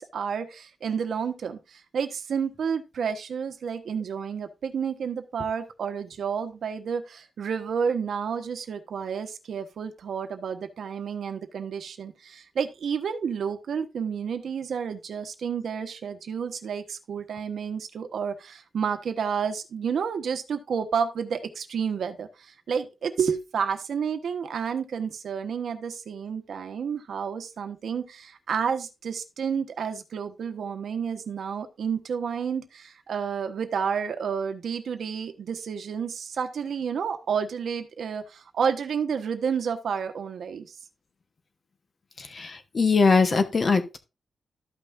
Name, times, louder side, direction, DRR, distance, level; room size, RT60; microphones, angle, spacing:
voice 1, 0.0-40.7, right 6 dB, 65° right, 8 dB, 1.1 m, -30 dB
voice 2, 42.2-44.0, left 4 dB, 35° left, 9 dB, 1.1 m, -22 dB
13.5 x 5.8 x 2.6 m, 0.27 s
wide cardioid pair, 170°, 0 cm